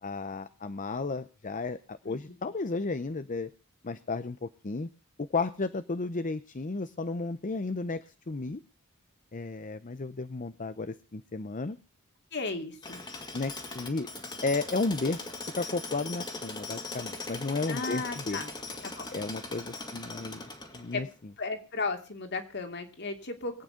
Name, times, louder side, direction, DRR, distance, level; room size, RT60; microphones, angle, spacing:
voice 1, 0.0-3.5 3.8-4.9 5.2-8.6 9.3-11.8 13.3-14.1 14.4-15.3 15.6-18.4 19.1-20.5 20.7-21.1, left 3 dB, 35° left, 12 dB, 0.7 m, -33 dB
voice 2, 2.0-2.4 12.3-13.0 17.7-18.5 18.8-19.1 20.9-21.1 21.4-23.6, left 3 dB, 55° left, 6 dB, 2.8 m, -35 dB
Tools, 12.8-21.1, left 3 dB, 20° left, 2.2 m, -40 dB
22.5 x 9.0 x 5.1 m, 0.35 s
head